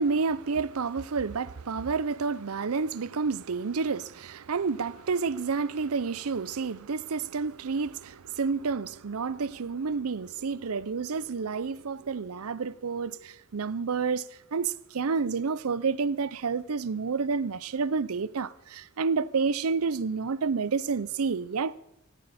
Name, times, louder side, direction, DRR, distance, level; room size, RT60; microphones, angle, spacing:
voice 1, 0.0-21.8, right 5 dB, 85° right, 0.6 m, -29 dB
17.0 x 16.5 x 4.2 m
head